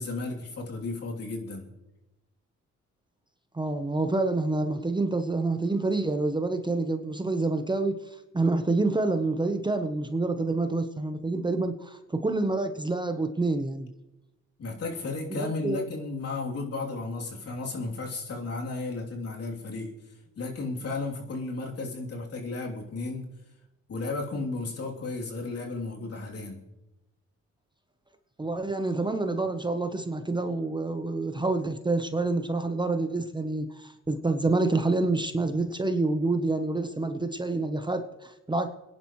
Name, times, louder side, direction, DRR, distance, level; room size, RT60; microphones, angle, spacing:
voice 1, 0.0-1.7 14.6-19.9 20.4-23.3 23.9-26.6, left 3 dB, 50° left, -1 dB, 3.1 m, -34 dB
voice 2, 3.5-7.9 8.3-13.9 15.3-15.8 28.4-38.7, right 2 dB, 15° right, 7 dB, 0.9 m, -27 dB
28.5 x 10.5 x 3.2 m, 1.0 s
cardioid pair, 90°, 30 cm